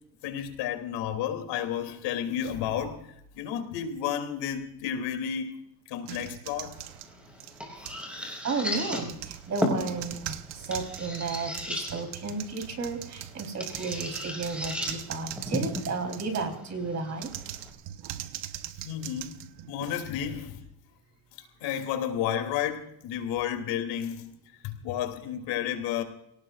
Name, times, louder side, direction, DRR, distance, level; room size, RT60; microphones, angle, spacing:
voice 1, 0.2-3.0 3.3-5.5 5.9-6.8 8.1-8.3 18.8-19.4 19.7-20.6 21.6-24.3 24.6-26.0, left 9 dB, 85° left, 6 dB, 3.1 m, -31 dB
sound 1, 6.0-8.1 8.7-16.6 17.1-20.1, right 12 dB, 80° right, 1.2 m, -41 dB
sound 2, 6.7-17.7, left 1 dB, 5° right, 5.7 m, -36 dB
voice 2, 8.4-17.3, right 4 dB, 40° right, 4 dB, 4.1 m, -33 dB
28.0 x 18.5 x 2.5 m, 0.77 s
cardioid pair, 125°, 42 cm